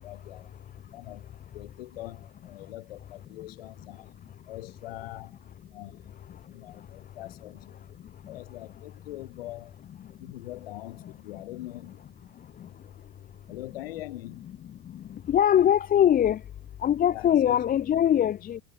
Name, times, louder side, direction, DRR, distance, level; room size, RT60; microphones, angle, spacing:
voice 1, 0.0-0.5 0.9-4.1 4.5-5.4 5.7-6.0 6.5-7.8 8.3-9.7 10.2-12.0 12.7-12.8 13.5-14.4 17.1-17.9, left 16 dB, 85° left, 5.9 m, -43 dB
voice 2, 14.9-16.4 16.8-18.6, left 10 dB, 30° left, 1.1 m, -22 dB
supercardioid pair, 120°, 29 cm